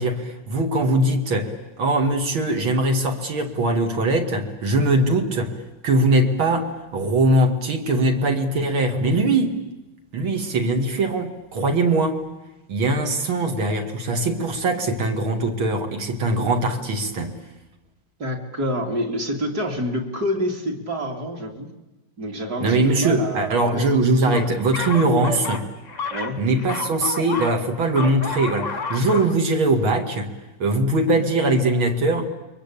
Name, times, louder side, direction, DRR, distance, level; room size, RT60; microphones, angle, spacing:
voice 1, 0.0-1.5 1.8-5.5 5.8-9.6 10.1-12.2 12.7-17.4 22.6-25.7 26.4-30.3 30.6-32.3, right 2 dB, 75° right, 5 dB, 3.1 m, -21 dB
voice 2, 18.2-21.7 22.2-23.8 24.3-24.5 26.1-26.4, equal, 45° right, 1 dB, 3.3 m, -27 dB
sound 1, 24.3-27.6 27.9-29.4, left 4 dB, 25° left, 1.0 m, -30 dB
29.0 x 23.0 x 8.6 m, 1.0 s
omnidirectional pair, 2.3 m